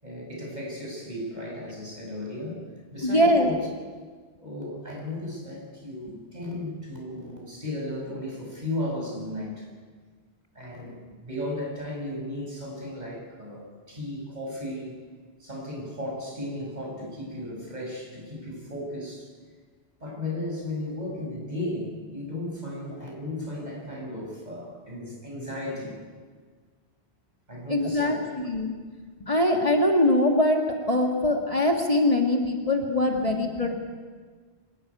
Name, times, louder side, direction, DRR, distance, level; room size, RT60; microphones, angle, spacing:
voice 1, 0.0-2.7 2.9-3.7 4.4-9.7 10.5-15.0 15.4-19.3 20.0-26.0 27.5-28.3, left 1 dB, 40° right, -1 dB, 6.6 m, -35 dB
voice 2, 3.0-3.5 27.7-28.7 29.3-33.7, left 1 dB, 35° left, 1 dB, 2.0 m, -22 dB
25.0 x 13.5 x 9.7 m, 1.5 s
omnidirectional pair, 1.1 m